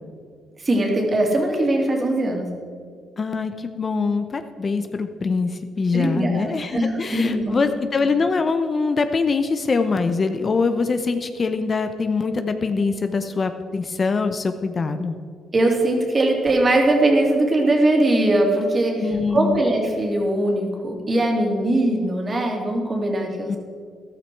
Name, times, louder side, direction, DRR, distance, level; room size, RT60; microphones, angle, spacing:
voice 1, 0.6-2.5 5.9-7.6 15.5-23.6, right 1 dB, 30° right, 1 dB, 2.7 m, -21 dB
voice 2, 3.2-15.2 19.0-19.6 23.5-23.6, left 4 dB, 35° left, 8 dB, 0.7 m, -23 dB
13.5 x 12.0 x 4.6 m, 2.1 s
cardioid pair, 90°, 0 cm